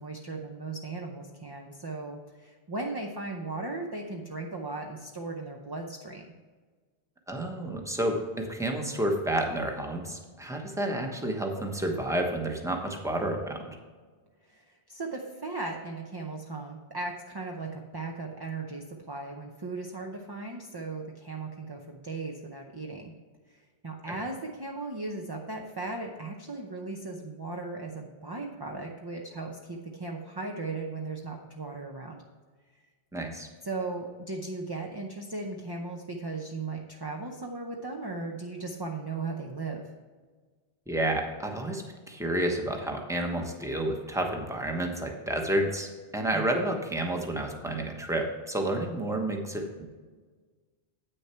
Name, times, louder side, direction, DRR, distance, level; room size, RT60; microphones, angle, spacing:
voice 1, 0.0-6.3 14.5-23.1 23.8-32.2 33.6-39.9 46.3-46.7, right 3 dB, 25° right, 1 dB, 0.6 m, -37 dB
voice 2, 7.3-13.8 24.1-24.2 33.1-33.5 40.9-49.8, right 1 dB, 5° right, 2 dB, 0.9 m, -30 dB
8.8 x 6.6 x 4.4 m, 1.4 s
omnidirectional pair, 1.1 m